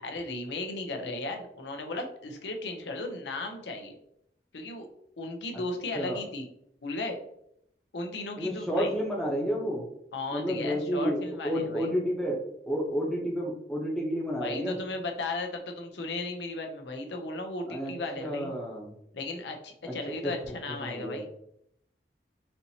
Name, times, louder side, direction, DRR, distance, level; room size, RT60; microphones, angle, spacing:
voice 1, 0.0-4.0 4.5-4.9 5.2-6.5 6.8-7.2 7.9-8.9 10.1-11.9 14.3-18.5 19.1-21.3, left 2 dB, 85° left, 4 dB, 0.6 m, -35 dB
voice 2, 8.4-9.8 10.3-14.8 17.7-18.9 19.8-19.9 20.2-20.3 20.8-21.2, equal, ahead, -3 dB, 0.7 m, -31 dB
4.3 x 2.8 x 2.7 m, 0.74 s
head